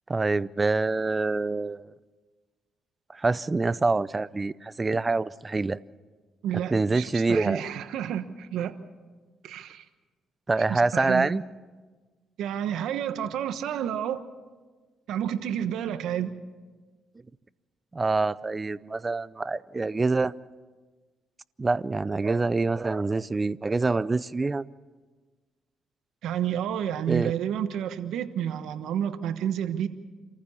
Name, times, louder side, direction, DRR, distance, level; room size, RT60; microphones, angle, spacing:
voice 1, 0.1-1.9 3.1-5.8 6.5-7.6 10.5-11.4 17.9-20.3 21.6-24.6 27.1-27.3, right 3 dB, 25° right, 18 dB, 0.5 m, -26 dB
voice 2, 6.4-8.8 9.4-9.8 10.7-11.3 12.4-14.2 15.1-16.3 26.2-29.9, right 9 dB, 80° right, 11 dB, 1.2 m, -30 dB
27.5 x 15.0 x 7.1 m, 1.4 s
cardioid pair, 90°, 0 cm